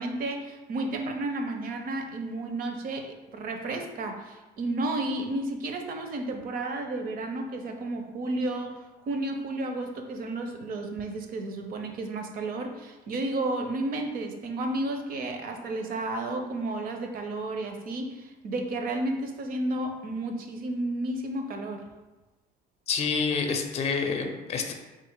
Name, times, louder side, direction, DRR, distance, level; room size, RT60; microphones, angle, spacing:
voice 1, 0.0-8.8 9.1-21.8, right 2 dB, 60° right, 5 dB, 0.6 m, -32 dB
voice 2, 22.9-24.7, left 5 dB, 40° left, 4 dB, 0.5 m, -28 dB
3.5 x 2.4 x 4.6 m, 1.1 s
cardioid pair, 110°, 17 cm